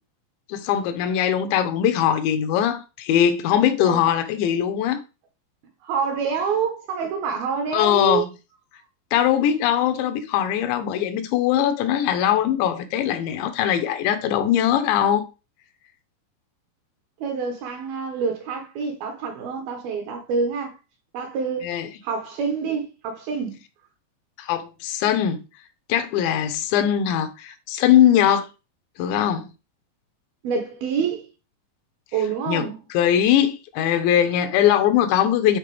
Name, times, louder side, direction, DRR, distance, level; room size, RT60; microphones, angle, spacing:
voice 1, 0.5-5.0 7.7-8.3 9.1-15.2 21.6-21.9 24.4-25.4 25.9-28.5 29.0-29.5 32.5-32.6 32.9-35.6, left 10 dB, 85° left, 3.1 m, -21 dB
voice 2, 5.8-8.2 17.2-20.8 21.1-21.8 22.0-23.6 30.4-31.3 32.1-32.8, right 5 dB, 70° right, 2.5 m, -27 dB
10.0 x 4.2 x 3.4 m
omnidirectional pair, 5.1 m